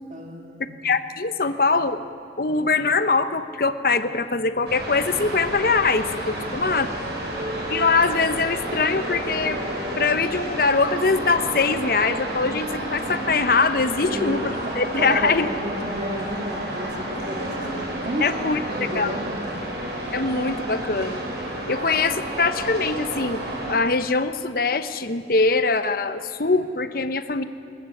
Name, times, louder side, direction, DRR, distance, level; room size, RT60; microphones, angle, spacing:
voice 1, 0.1-0.9 6.4-6.6 7.2-7.5 14.0-19.6, equal, 40° right, 1 dB, 2.3 m, -33 dB
voice 2, 0.8-2.0 2.4-6.9 7.7-9.6 10.0-14.4 14.8-15.5 18.2-18.6 19.0-19.1 20.1-21.2 21.7-27.4, left 4 dB, 55° left, 11 dB, 0.9 m, -22 dB
sound 1, 4.7-23.7, right 1 dB, 75° right, 5.8 m, -30 dB
21.5 x 19.0 x 7.8 m, 2.6 s
head